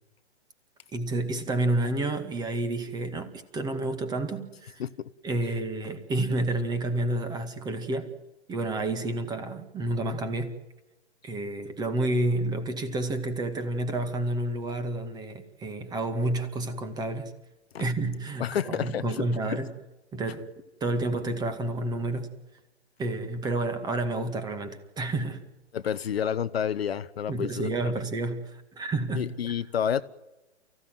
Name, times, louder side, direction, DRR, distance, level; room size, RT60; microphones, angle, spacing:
voice 1, 0.9-4.8 5.2-8.1 8.5-10.6 11.2-17.3 17.8-19.7 20.1-20.5 20.8-22.3 23.0-25.4 27.3-29.3, right 2 dB, 10° right, 2.1 m, -30 dB
voice 2, 18.4-19.0 19.5-19.6 25.7-27.7 29.1-30.0, left 8 dB, 60° left, 1.2 m, -29 dB
29.5 x 16.0 x 9.4 m
hypercardioid pair, 140°, 35 cm